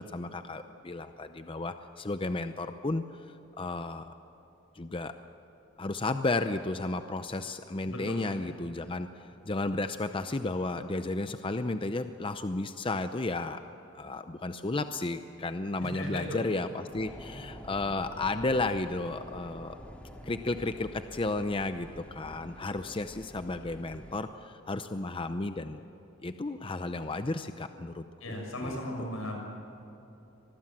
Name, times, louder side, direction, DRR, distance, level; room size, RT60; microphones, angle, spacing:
voice 1, 0.0-3.0 3.6-4.1 4.8-5.1 5.8-13.6 13.9-19.8 20.2-25.8 26.2-29.1, left 2 dB, 25° left, 9 dB, 0.6 m, -33 dB
voice 2, 7.9-8.4 15.8-16.4 28.2-29.4, left 1 dB, 85° left, 1 dB, 6.6 m, -37 dB
sound 1, 16.9-24.1, equal, 5° left, 2.2 m, -47 dB
24.5 x 20.0 x 7.5 m, 3.0 s
head